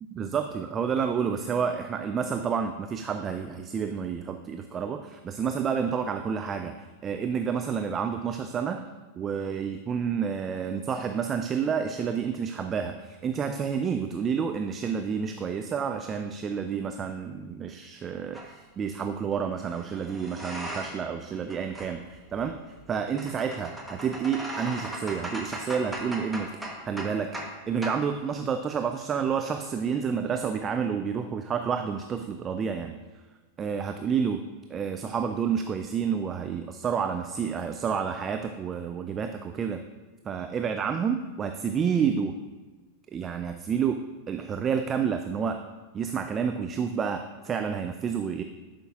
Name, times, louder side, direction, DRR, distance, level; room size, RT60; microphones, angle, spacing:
voice 1, 0.1-8.8 9.1-27.4 27.7-32.9 33.6-34.4 34.7-39.8 40.2-42.4 43.1-45.6 45.9-48.4, right 6 dB, 25° right, 7 dB, 0.3 m, -29 dB
sound 1, 18.3-18.5 19.6-21.1 21.4-27.6 27.8-28.0, right 1 dB, ahead, 1.0 m, -38 dB
11.0 x 5.2 x 2.4 m, 1.3 s
figure-of-eight pair, 90°, 0 cm